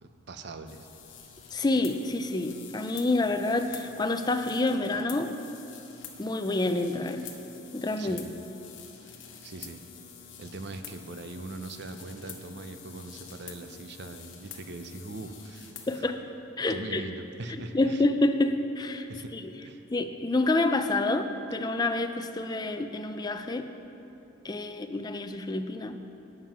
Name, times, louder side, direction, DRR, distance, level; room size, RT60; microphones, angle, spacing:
voice 1, 0.0-0.9 8.0-8.3 9.0-9.1 9.4-9.8 10.4-16.0 16.7-18.0 19.1-19.3 19.6-19.8, right 2 dB, 55° right, 8 dB, 0.6 m, -41 dB
sound 1, 0.7-16.0, left 7 dB, 65° left, 1.1 m, -48 dB
voice 2, 1.5-5.3 6.2-7.3 7.7-8.2 15.9-16.2 16.6-17.0 17.7-19.1 19.3-19.5 19.9-23.7 24.4-26.0, left 2 dB, 20° left, 7 dB, 0.4 m, -28 dB
9.1 x 7.5 x 5.8 m, 2.9 s
head